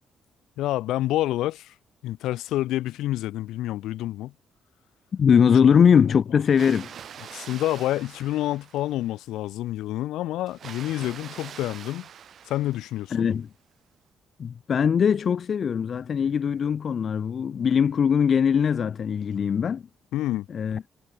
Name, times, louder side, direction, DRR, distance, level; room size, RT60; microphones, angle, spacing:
voice 1, 0.6-1.7 2.0-4.3 7.2-12.1 12.5-13.3 20.1-20.5, left 15 dB, 90° left, 1.2 m, -28 dB
voice 2, 5.1-6.9 13.1-13.5 14.4-19.8 20.5-20.8, left 7 dB, 50° left, 0.6 m, -21 dB
Water, 6.4-9.2 10.5-13.3, right 8 dB, 60° right, 1.3 m, -44 dB
cardioid pair, 90°, 0 cm